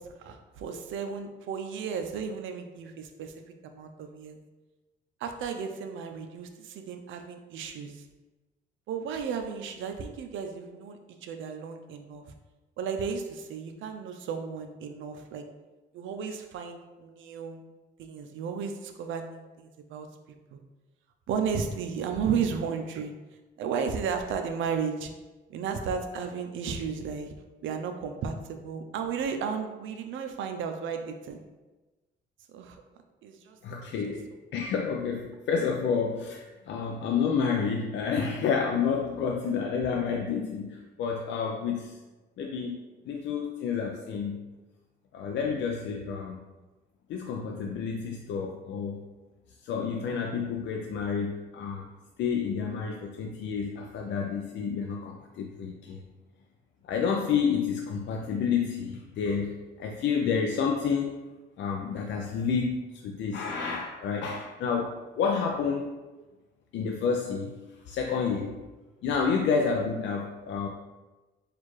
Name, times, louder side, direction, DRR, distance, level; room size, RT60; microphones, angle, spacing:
voice 1, 0.2-3.3 3.6-4.4 5.2-8.0 8.9-12.2 12.8-15.5 15.9-17.6 18.0-20.1 20.5-20.6 21.3-23.1 23.6-25.1 25.5-27.3 27.6-31.4 32.5-32.8 33.2-33.6, right 6 dB, 75° right, 6 dB, 0.5 m, -34 dB
voice 2, 33.6-42.0 42.4-42.8 43.1-44.4 45.1-46.4 47.1-49.0 49.6-51.9 52.2-56.0 56.8-61.2 61.6-66.0 66.7-67.6 67.9-68.6 69.0-70.7, left 6 dB, 70° left, 1 dB, 0.4 m, -29 dB
4.4 x 2.5 x 3.1 m, 1.2 s
cardioid pair, 90°, 20 cm